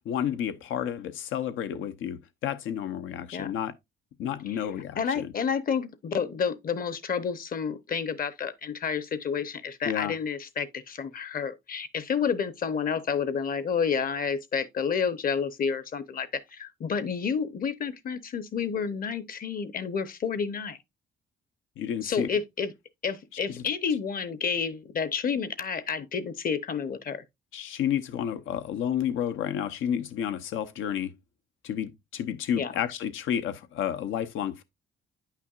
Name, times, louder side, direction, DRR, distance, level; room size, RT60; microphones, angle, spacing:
voice 1, 0.0-3.7 4.2-5.3 9.8-10.1 21.8-22.3 23.5-23.6 27.5-31.1 31.6-34.6, left 9 dB, 85° left, 0.8 m, -31 dB
voice 2, 5.0-20.8 22.0-22.7 23.0-27.2 32.6-32.7, left 6 dB, 45° left, 0.9 m, -30 dB
9.3 x 5.8 x 2.4 m
cardioid pair, 90°, 20 cm